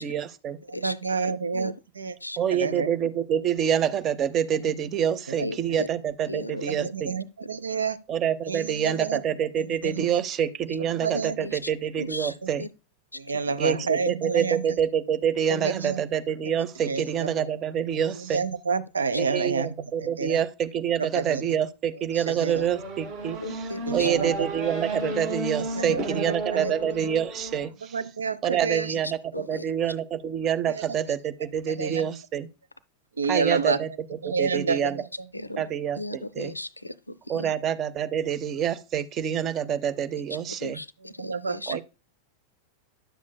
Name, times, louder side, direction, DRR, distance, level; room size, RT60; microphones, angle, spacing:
voice 1, 0.0-0.6 2.4-7.1 8.1-12.6 13.6-18.4 19.2-28.0 28.4-32.5 33.3-35.0 35.6-36.5 37.3-40.8 41.7-41.8, right 9 dB, 30° right, 0.6 m, -27 dB
voice 2, 0.7-2.1 2.5-2.9 5.4-5.8 6.7-8.0 8.5-9.2 9.8-10.0 11.0-11.4 12.4-12.5 13.1-14.8 15.5-16.0 16.9-17.3 18.2-19.7 20.0-20.4 21.0-21.4 22.1-22.6 23.9-24.3 25.8-26.3 26.5-26.7 27.9-28.9 30.7-30.8 31.8-32.1 33.2-33.8 34.2-35.0 41.2-41.8, right 5 dB, 75° right, 0.5 m, -29 dB
voice 3, 1.2-1.7 2.2-2.4 5.4-5.9 6.3-6.9 7.5-7.8 11.1-11.7 12.0-12.7 13.1-13.6 19.1-19.2 23.4-24.1 29.0-29.7 35.3-35.6 36.0-37.5 40.6-41.8, left 1 dB, 85° left, 0.4 m, -37 dB
Race car auto racing / Accelerating revving vroom, 22.5-27.7, right 2 dB, 50° right, 2.3 m, -33 dB
10.0 x 7.1 x 2.2 m
figure-of-eight pair, 90°, 0 cm